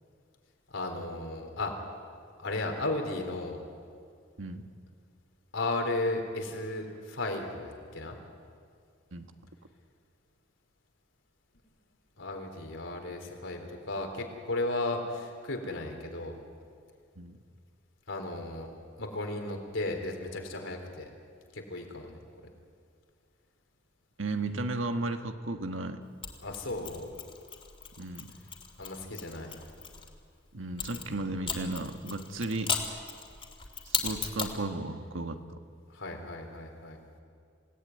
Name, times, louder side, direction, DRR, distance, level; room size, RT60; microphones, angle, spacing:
voice 1, 0.7-1.7 2.4-3.6 5.5-8.2 12.2-16.4 18.1-18.7 19.0-21.1 21.5-22.2 26.4-27.1 28.8-29.6 35.9-37.0, left 2 dB, 80° left, 3 dB, 4.0 m, -35 dB
voice 2, 24.2-26.0 28.0-28.3 30.5-32.7 33.9-35.6, right 2 dB, 85° right, 6 dB, 1.6 m, -34 dB
Mechanisms, 26.2-30.1 30.8-34.6, left 6 dB, 30° left, 2.9 m, -37 dB
27.5 x 17.5 x 9.6 m, 2.2 s
head